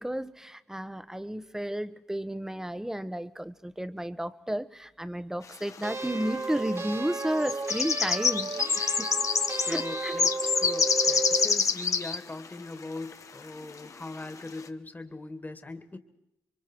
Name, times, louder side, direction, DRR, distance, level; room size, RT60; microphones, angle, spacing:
voice 1, 0.0-9.1 9.7-10.1, right 1 dB, 10° right, 12 dB, 1.3 m, -33 dB
sound 1, 5.8-5.9 6.7-6.9 7.2-12.2 12.5-12.6 13.0-13.1 13.9-14.0 14.4-14.6, left 5 dB, 60° left, 1.3 m, -26 dB
sound 2, 5.8-11.5, right 3 dB, 45° right, 1.4 m, -34 dB
voice 2, 9.5-16.0, left 2 dB, 30° left, 9 dB, 2.3 m, -40 dB
27.0 x 23.5 x 4.7 m, 0.86 s
cardioid pair, 55°, 6 cm